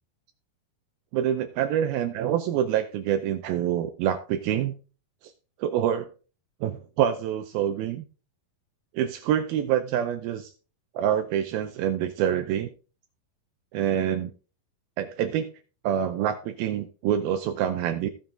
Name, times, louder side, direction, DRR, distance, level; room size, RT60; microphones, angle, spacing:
voice 1, 1.1-4.7 5.6-6.1 6.6-8.0 8.9-10.5 10.9-12.7 13.7-14.3 15.0-15.5 15.8-18.1, right 10 dB, 80° right, 7 dB, 2.5 m, -26 dB
16.5 x 5.7 x 3.8 m, 0.37 s
omnidirectional pair, 4.5 m